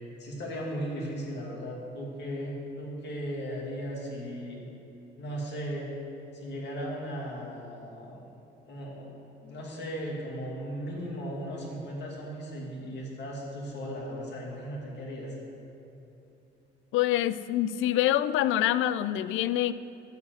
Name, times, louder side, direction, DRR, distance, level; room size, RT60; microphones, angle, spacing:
voice 1, 0.2-4.7 5.2-5.9 6.3-8.3 8.7-15.3, equal, 60° left, -2 dB, 2.6 m, -37 dB
voice 2, 16.9-19.7, left 13 dB, 85° left, 15 dB, 0.4 m, -26 dB
12.0 x 4.8 x 7.9 m, 2.9 s
cardioid pair, 90°, 20 cm